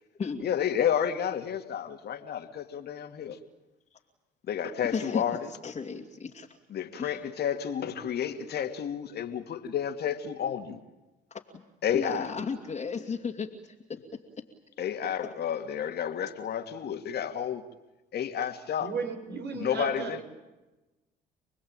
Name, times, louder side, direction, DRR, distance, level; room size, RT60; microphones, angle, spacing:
voice 1, 0.4-3.4 4.5-5.4 6.7-10.8 11.8-12.3 14.8-17.6 18.1-18.9 19.5-20.2, left 9 dB, 60° left, 2.5 m, -31 dB
voice 2, 4.9-5.2 5.6-6.5 7.0-7.2 11.3-11.4 11.9-13.5 13.9-14.0, left 5 dB, 35° left, 2.6 m, -34 dB
voice 3, 18.8-20.2, right 5 dB, 65° right, 6.0 m, -35 dB
29.0 x 20.5 x 9.0 m
supercardioid pair, 75°, 19 cm